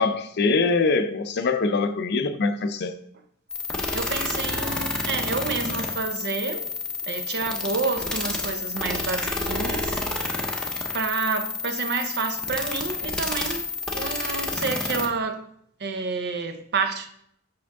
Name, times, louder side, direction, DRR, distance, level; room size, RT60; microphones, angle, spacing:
voice 1, 0.0-2.9, left 4 dB, 55° left, 0.5 m, -23 dB
sound 1, 3.5-15.1, left 3 dB, 5° left, 0.7 m, -29 dB
voice 2, 3.9-6.7 7.1-10.6 10.9-15.5 15.8-17.1, right 4 dB, 55° right, 0.7 m, -29 dB
6.2 x 5.0 x 3.5 m
head